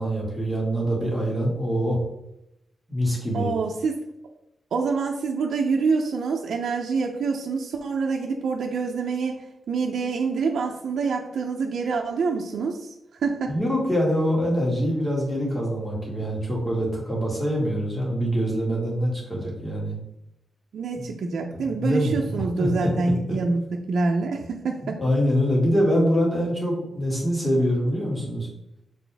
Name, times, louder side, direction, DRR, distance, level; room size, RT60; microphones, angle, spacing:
voice 1, 0.0-2.0 2.9-3.5 13.5-20.0 21.5-22.9 23.3-23.4 24.8-28.5, equal, 15° left, -3 dB, 2.0 m, -24 dB
voice 2, 3.3-4.0 4.7-9.4 9.7-12.9 13.2-13.5 20.7-25.0, right 4 dB, 75° right, 1 dB, 0.6 m, -26 dB
6.6 x 4.3 x 3.4 m, 0.83 s
wide cardioid pair, 150°, 0 cm